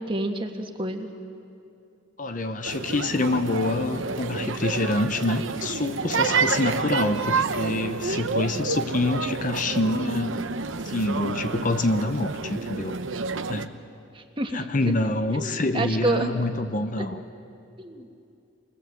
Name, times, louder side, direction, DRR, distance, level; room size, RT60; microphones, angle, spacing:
voice 1, 0.1-1.1 14.1-14.6 15.3-16.3 17.8-18.1, right 2 dB, 25° right, 4 dB, 1.5 m, -28 dB
voice 2, 2.2-10.4 10.8-13.0 13.5-13.7 14.5-17.2, left 2 dB, 40° left, 9 dB, 0.8 m, -26 dB
sound 1, 2.6-13.7, right 4 dB, 85° right, 0.9 m, -29 dB
27.5 x 20.0 x 7.6 m, 2.6 s
head